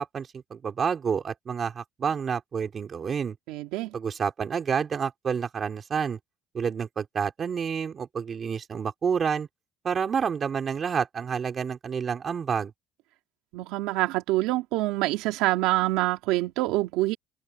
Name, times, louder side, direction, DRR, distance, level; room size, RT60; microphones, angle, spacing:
voice 1, 0.0-3.4 3.9-6.2 6.5-9.5 9.8-12.7, right 6 dB, 30° right, 4.2 m, -29 dB
voice 2, 3.5-3.9 13.5-17.2, right 18 dB, 80° right, 3.1 m, -26 dB
open air
cardioid pair, 160°, 0 cm